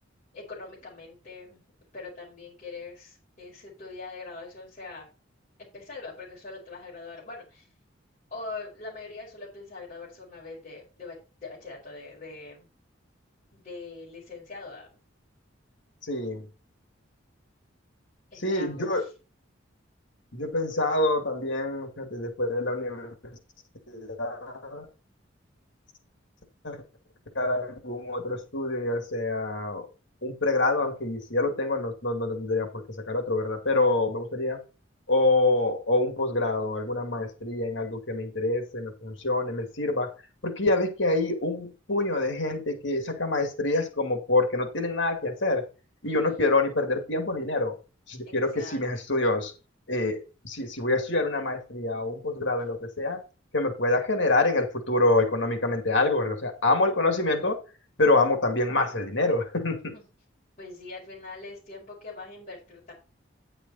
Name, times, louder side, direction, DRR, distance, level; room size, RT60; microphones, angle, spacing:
voice 1, 0.3-1.6 1.9-5.1 5.7-7.7 8.3-12.7 13.5-14.9 16.2-16.3 18.3-19.1 46.0-46.4 48.2-48.8 59.9-60.0 60.6-62.9, left 3 dB, 40° left, -7 dB, 5.0 m, -42 dB
voice 2, 16.0-16.5 18.4-19.0 20.3-23.3 23.9-24.9 26.6-26.8 27.3-29.9 30.2-34.6 35.1-40.1 40.4-45.6 46.0-47.8 48.1-49.5 49.9-53.2 53.5-57.6 58.0-59.9, left 2 dB, 65° left, 5 dB, 2.3 m, -26 dB
10.0 x 6.9 x 4.2 m, 0.32 s
head